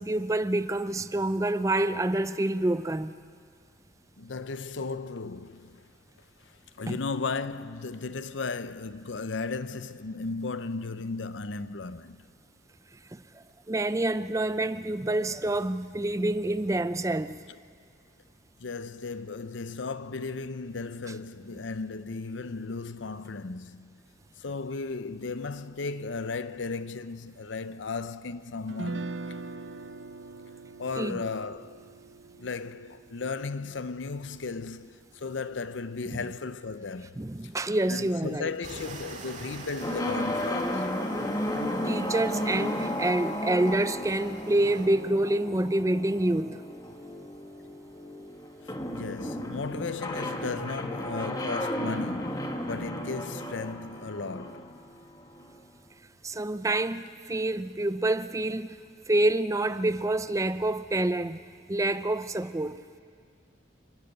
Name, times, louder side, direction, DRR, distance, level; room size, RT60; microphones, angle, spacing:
voice 1, 0.0-3.2 6.8-7.0 13.1-17.4 31.0-31.2 36.1-36.2 37.2-38.5 41.8-46.6 56.2-58.8 59.1-61.4 61.7-62.8, right 1 dB, 15° right, 0.5 m, -27 dB
voice 2, 4.2-5.9 6.7-12.2 18.6-24.0 24.4-29.4 30.8-31.9 32.4-37.2 37.9-40.9 48.6-54.8, left 4 dB, 90° left, 0.7 m, -35 dB
Guitar, 28.7-34.8, right 3 dB, 80° right, 0.8 m, -42 dB
sound 1, 38.6-44.9, right 3 dB, 40° right, 2.1 m, -46 dB
sound 2, 39.8-55.6, left 1 dB, 20° left, 1.6 m, -34 dB
29.0 x 13.0 x 8.0 m
head